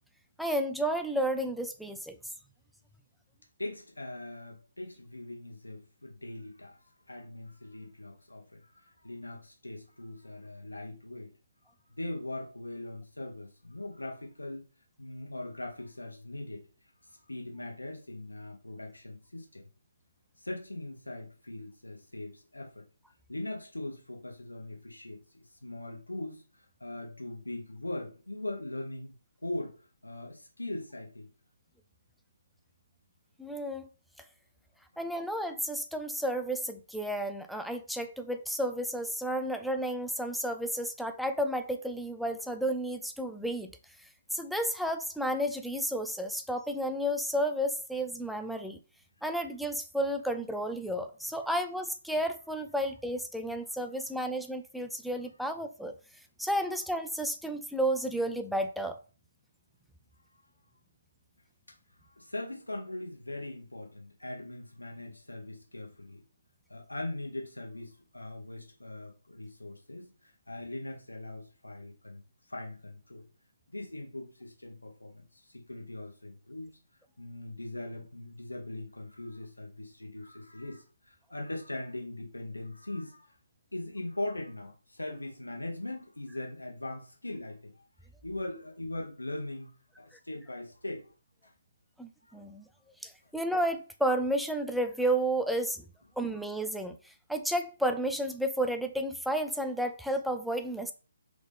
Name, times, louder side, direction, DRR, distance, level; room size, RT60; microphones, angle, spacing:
voice 1, 0.4-2.2 33.4-33.9 35.0-43.7 44.3-48.8 49.2-56.0 56.4-59.0 92.0-92.6 93.0-95.8 96.2-100.9, right 1 dB, ahead, 6 dB, 0.3 m, -32 dB
voice 2, 3.6-11.3 11.9-14.6 15.0-16.6 17.0-19.7 20.4-22.8 23.3-29.1 29.4-29.7 30.0-31.3 60.4-60.6 62.1-66.2 66.7-72.2 72.5-73.2 73.7-76.7 77.2-83.3 83.7-87.7 88.2-91.1 91.4-91.5 92.3-92.4, left 1 dB, 80° left, 0 dB, 1.2 m, -40 dB
3.9 x 3.6 x 3.4 m, 0.36 s
figure-of-eight pair, 140°, 0 cm